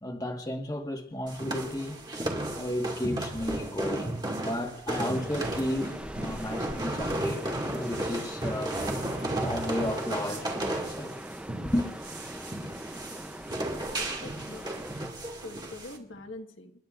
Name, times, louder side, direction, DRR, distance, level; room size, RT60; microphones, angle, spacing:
voice 1, 0.0-2.0 2.5-8.8 9.4-11.2 11.5-11.9, left 1 dB, 20° left, 1.5 m, -33 dB
sound 1, 1.3-16.0, right 1 dB, 20° right, 2.0 m, -34 dB
sound 2, 5.1-15.1, equal, 5° right, 0.5 m, -41 dB
voice 2, 13.8-14.9 15.4-16.7, left 2 dB, 75° left, 1.6 m, -44 dB
29.5 x 12.0 x 2.5 m
head